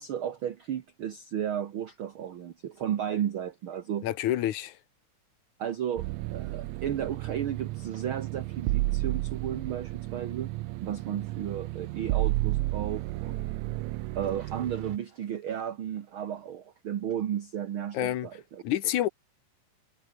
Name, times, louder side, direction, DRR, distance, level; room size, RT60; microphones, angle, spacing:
voice 1, 0.0-4.1 5.6-10.5 10.8-13.5 14.1-18.6, right 9 dB, 55° right, 1.6 m, -34 dB
voice 2, 4.0-4.8 17.9-18.3 18.6-19.1, left 12 dB, 70° left, 2.6 m, -28 dB
sound 1, 6.0-15.0, right 19 dB, 80° right, 1.7 m, -32 dB
omnidirectional pair, 3.6 m